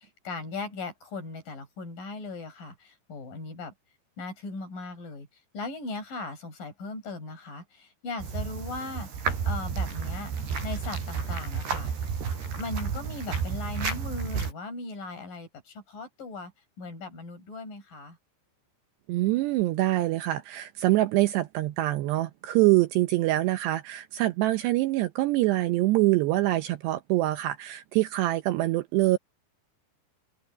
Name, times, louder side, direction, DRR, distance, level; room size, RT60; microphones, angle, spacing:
voice 1, 0.0-3.7 4.2-5.3 5.5-10.3 10.6-11.9 12.5-16.5 16.8-18.2, left 3 dB, 45° left, 7.0 m, -38 dB
sound 1, 8.2-14.5, right 6 dB, 60° right, 6.5 m, -31 dB
voice 2, 19.1-29.2, right 17 dB, 80° right, 2.6 m, -25 dB
omnidirectional pair, 5.4 m